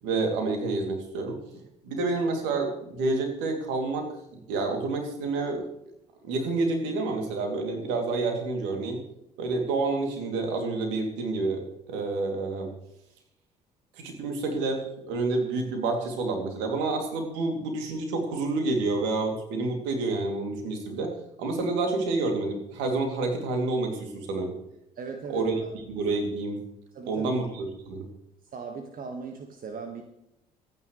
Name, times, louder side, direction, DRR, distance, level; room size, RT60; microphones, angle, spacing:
voice 1, 0.0-1.4 1.8-4.1 4.3-5.7 6.2-9.0 9.4-11.6 11.9-12.7 14.0-14.8 15.1-21.1 21.4-24.5 25.3-25.6 25.9-26.6 27.0-28.0, right 3 dB, 70° right, 3 dB, 2.9 m, -28 dB
voice 2, 24.9-25.7 26.9-27.3 28.5-30.0, right 5 dB, 45° right, 4 dB, 1.7 m, -38 dB
25.5 x 9.6 x 3.3 m, 0.81 s
figure-of-eight pair, 50°, 20 cm